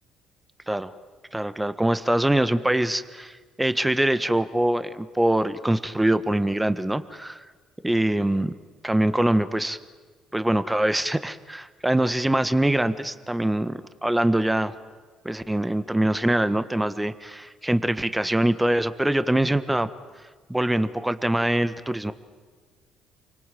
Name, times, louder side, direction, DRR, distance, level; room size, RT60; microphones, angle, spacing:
voice 1, 1.3-7.4 7.8-8.5 8.8-9.8 10.3-14.7 15.2-19.9 20.5-22.1, right 1 dB, 10° right, 13 dB, 1.5 m, -23 dB
29.5 x 24.5 x 7.7 m, 1.5 s
hypercardioid pair, 50°, 0 cm